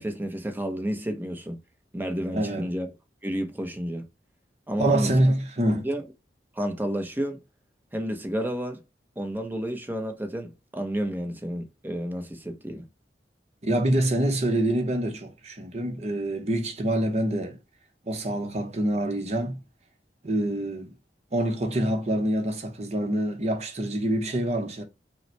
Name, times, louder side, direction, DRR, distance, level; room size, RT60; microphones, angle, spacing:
voice 1, 0.0-1.6 1.9-2.9 3.2-4.1 4.7-5.1 5.8-6.0 6.6-7.4 7.9-8.8 9.2-12.8, equal, 10° right, 0.8 m, -31 dB
voice 2, 2.3-2.7 4.8-5.9 13.6-17.6 18.1-19.6 20.2-21.0 21.3-24.8, right 1 dB, 40° right, 1.0 m, -26 dB
5.4 x 2.2 x 4.5 m
head